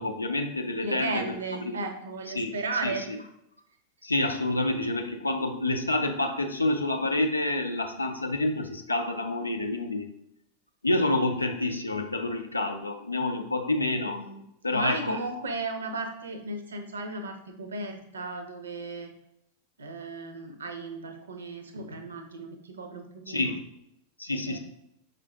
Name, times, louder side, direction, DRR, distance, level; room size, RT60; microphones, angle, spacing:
voice 1, 0.0-1.3 1.7-1.8 2.3-2.5 2.8-3.2 4.0-10.1 10.8-14.2 14.6-15.2 23.3-23.6 24.2-24.6, left 2 dB, 80° left, 5 dB, 0.5 m, -28 dB
voice 2, 0.8-3.2 14.1-14.4 14.7-19.1 19.8-23.6 24.5-24.6, right 3 dB, 70° right, 6 dB, 0.6 m, -35 dB
5.1 x 2.5 x 3.4 m, 0.78 s
figure-of-eight pair, 90°, 0 cm